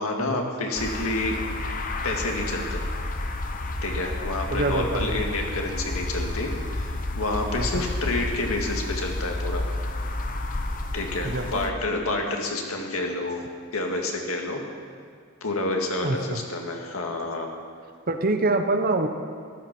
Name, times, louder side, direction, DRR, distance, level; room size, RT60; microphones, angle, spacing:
voice 1, 0.0-1.4 2.0-2.8 3.8-9.7 10.9-13.4 13.7-14.6 15.4-17.5, left 2 dB, 80° left, 2 dB, 2.0 m, -29 dB
sound 1, 0.8-11.7, left 2 dB, 40° left, 0.9 m, -30 dB
voice 2, 4.5-5.2 7.6-7.8 11.2-11.6 16.0-16.4 18.1-19.1, right 2 dB, 45° right, 7 dB, 0.9 m, -26 dB
14.0 x 12.0 x 6.1 m, 2.1 s
head